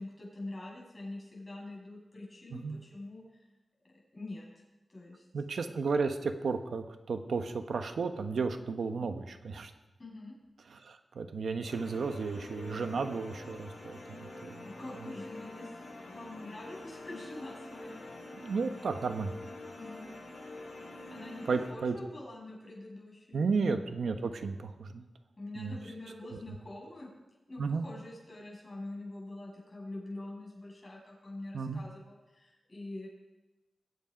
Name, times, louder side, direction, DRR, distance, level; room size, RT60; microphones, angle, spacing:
voice 1, 0.0-3.5 4.1-4.6 4.9-5.2 10.0-10.3 14.6-18.0 19.8-20.1 21.1-23.6 25.4-27.1 27.5-33.1, left 2 dB, 30° left, -3 dB, 6.6 m, -45 dB
voice 2, 5.3-9.7 10.7-14.6 15.0-15.1 18.3-19.3 21.5-22.0 23.3-25.0 25.6-25.7 26.3-26.6 27.6-27.8 31.5-31.8, right 4 dB, 85° right, 7 dB, 1.1 m, -33 dB
sound 1, 11.7-21.7, left 2 dB, 60° left, 4.4 m, -46 dB
21.5 x 8.5 x 5.1 m, 1.1 s
wide cardioid pair, 85°, 0 cm